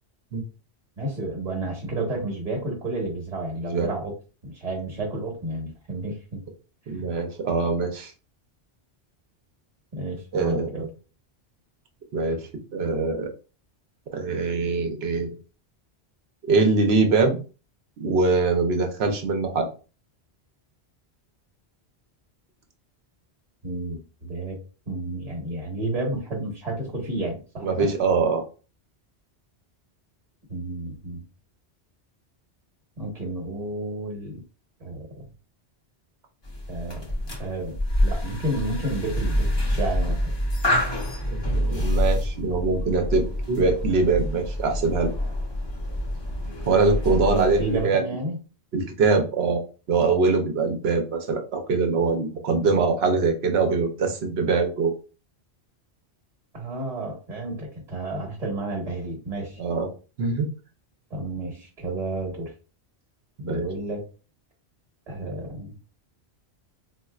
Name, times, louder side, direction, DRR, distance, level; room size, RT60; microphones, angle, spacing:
voice 1, 1.0-4.1 4.4-6.4 7.0-7.1 9.9-10.8 23.6-24.6 24.9-27.9 30.5-31.2 33.0-34.4 34.8-35.1 36.7-37.1 37.4-40.2 47.1-48.4 56.5-59.6 61.1-62.5 63.4-64.1 65.1-65.7, right 2 dB, 40° right, -1 dB, 1.2 m, -31 dB
voice 2, 3.6-3.9 6.9-8.1 10.3-10.9 12.1-13.3 14.1-15.3 16.4-17.4 18.0-19.7 27.6-28.4 41.3-45.1 46.7-48.1 48.7-49.6 49.9-54.9 59.6-59.9 60.2-60.5 63.5-63.6, right 4 dB, 70° right, 5 dB, 1.0 m, -23 dB
sound 1, 36.4-47.9, left 1 dB, 30° left, 0.7 m, -27 dB
4.1 x 2.5 x 2.3 m, 0.34 s
omnidirectional pair, 1.1 m